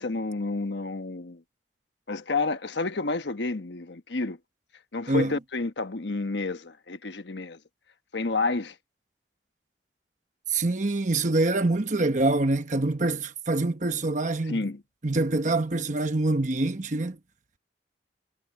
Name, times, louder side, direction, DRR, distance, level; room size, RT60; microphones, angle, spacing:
voice 1, 0.0-1.4 2.1-4.4 4.9-7.6 8.1-8.7 14.5-14.8, left 3 dB, 75° left, 1.2 m, -30 dB
voice 2, 10.5-14.6 15.0-17.2, right 2 dB, 45° right, 1.1 m, -25 dB
head